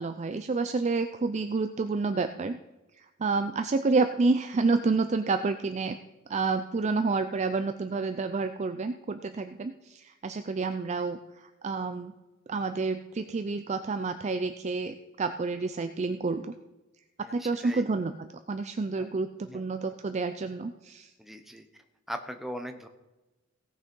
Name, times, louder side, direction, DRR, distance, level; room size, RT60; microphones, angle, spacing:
voice 1, 0.0-2.6 3.2-6.0 6.3-12.1 12.5-16.5 17.2-21.1, right 3 dB, 30° right, 8 dB, 0.4 m, -29 dB
voice 2, 17.2-17.9 19.0-19.1 19.4-19.6 21.2-21.7 22.1-22.9, equal, ahead, 6 dB, 0.9 m, -40 dB
17.0 x 6.4 x 5.3 m, 1.1 s
head